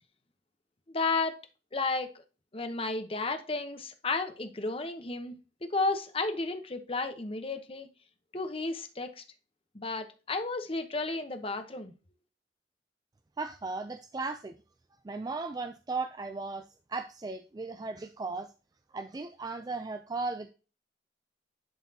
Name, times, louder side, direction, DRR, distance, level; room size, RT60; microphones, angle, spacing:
voice 1, 0.9-1.4 1.7-2.1 2.5-5.3 5.6-7.9 8.3-9.2 9.7-11.9, left 3 dB, 30° left, 0.9 m, -32 dB
voice 2, 13.4-14.5 15.0-16.6 16.9-18.5 18.9-20.5, right 3 dB, 20° right, 0.4 m, -36 dB
11.0 x 4.2 x 2.8 m
head